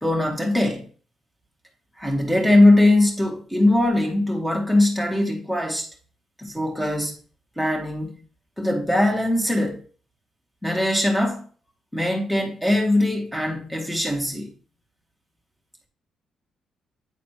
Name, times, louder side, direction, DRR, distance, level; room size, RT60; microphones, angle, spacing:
voice 1, 0.0-0.9 2.0-5.9 6.4-7.1 7.6-8.1 8.6-9.8 10.6-11.5 11.9-14.5, left 1 dB, 5° left, 2.0 m, -21 dB
9.2 x 4.0 x 3.0 m
cardioid pair, 90°, 0 cm